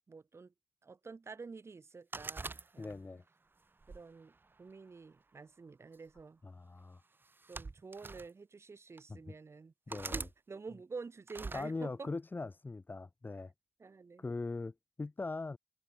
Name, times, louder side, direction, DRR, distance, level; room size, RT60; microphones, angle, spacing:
voice 1, 0.1-0.5 0.8-3.0 3.9-6.4 7.5-9.7 10.1-12.1 13.8-14.3, right 4 dB, 75° right, 3.0 m, -49 dB
sound 1, 2.1-3.2 3.8-5.0 5.9-6.2 7.2-8.3 9.0-9.1 9.9-10.3 11.3-11.7, right 3 dB, 50° right, 0.7 m, -43 dB
voice 2, 2.8-3.2 6.4-7.0 9.1-9.2 9.9-10.3 11.5-13.5 14.2-15.6, left 3 dB, 45° left, 0.7 m, -41 dB
wide cardioid pair, 55°, 5 cm